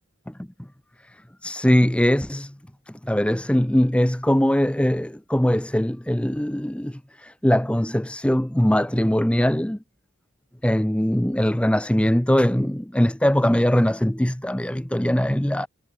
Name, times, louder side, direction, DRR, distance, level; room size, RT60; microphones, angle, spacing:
voice 1, 1.4-2.5 3.0-9.8 10.6-15.7, equal, 5° left, 0.6 m, -21 dB
head